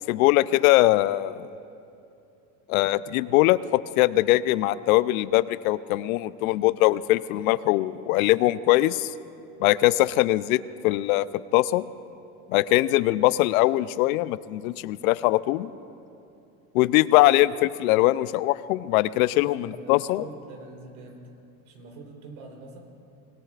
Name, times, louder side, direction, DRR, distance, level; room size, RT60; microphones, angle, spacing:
voice 1, 0.1-1.5 2.7-3.6 4.0-9.1 9.6-11.3 11.5-11.8 12.5-15.7 16.7-20.3, left 17 dB, 80° left, 17 dB, 0.6 m, -21 dB
voice 2, 19.4-21.3 21.7-22.8, right 3 dB, 85° right, 1 dB, 3.7 m, -44 dB
24.5 x 19.5 x 2.4 m, 2.6 s
supercardioid pair, 120°, 42 cm